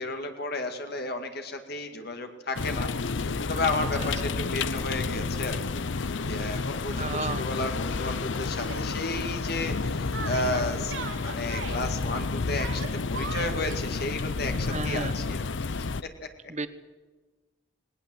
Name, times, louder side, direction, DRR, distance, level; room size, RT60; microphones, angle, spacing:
voice 1, 0.0-2.9 3.2-10.9 11.2-15.9, left 2 dB, 55° left, 6 dB, 2.1 m, -33 dB
sound 1, 2.6-16.0, left 4 dB, 70° left, 0.7 m, -30 dB
voice 2, 7.0-7.5 14.7-15.1 16.5-16.7, right 3 dB, 35° right, 12 dB, 1.1 m, -33 dB
Yell, 8.6-8.8 10.1-11.8 12.5-13.8, right 5 dB, 75° right, 2.5 m, -38 dB
19.5 x 19.0 x 7.8 m, 1.3 s
head